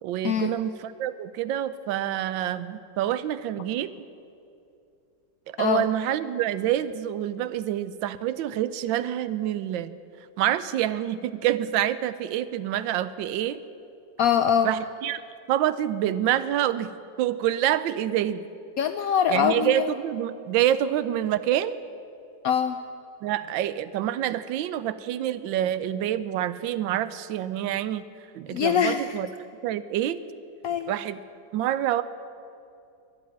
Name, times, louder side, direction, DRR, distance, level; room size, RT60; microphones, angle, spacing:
voice 1, 0.0-4.0 5.5-9.9 10.4-13.6 14.6-15.2 15.5-16.9 17.2-18.5 19.3-21.8 23.2-28.0 28.3-29.3 29.6-30.2 30.9-31.2 31.5-32.0, right 11 dB, 90° right, 15 dB, 1.4 m, -27 dB
voice 2, 14.2-14.7 18.8-19.9 22.4-22.8 28.5-29.0 30.6-30.9, left 8 dB, 75° left, 9 dB, 0.8 m, -23 dB
11.5 x 11.0 x 9.8 m, 2.5 s
omnidirectional pair, 2.0 m